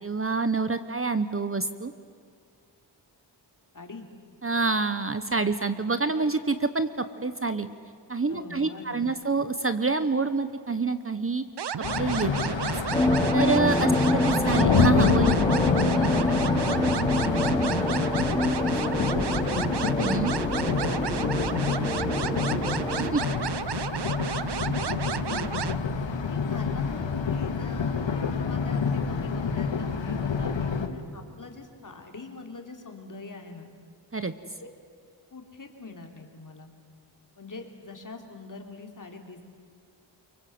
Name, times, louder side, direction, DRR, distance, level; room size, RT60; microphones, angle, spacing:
voice 1, 0.0-1.9 4.4-7.7 8.1-11.4 12.0-12.7 13.3-15.4 20.0-20.3 23.0-23.2 34.1-34.3, right 3 dB, 30° right, 11 dB, 1.0 m, -27 dB
voice 2, 3.7-4.1 8.3-9.1 15.8-19.7 20.4-22.5 23.2-23.6 24.3-25.5 26.2-28.0 28.5-33.7 34.6-34.7 35.3-36.7 37.4-39.6, left 3 dB, 45° left, 3 dB, 3.3 m, -42 dB
sound 1, 11.6-25.8, right 8 dB, 65° right, 0.8 m, -32 dB
sound 2, 11.8-30.9, left 5 dB, 85° left, 1.8 m, -28 dB
sound 3, 12.9-23.1, left 1 dB, 10° left, 1.1 m, -27 dB
29.5 x 24.0 x 8.0 m, 2.2 s
wide cardioid pair, 110°, 44 cm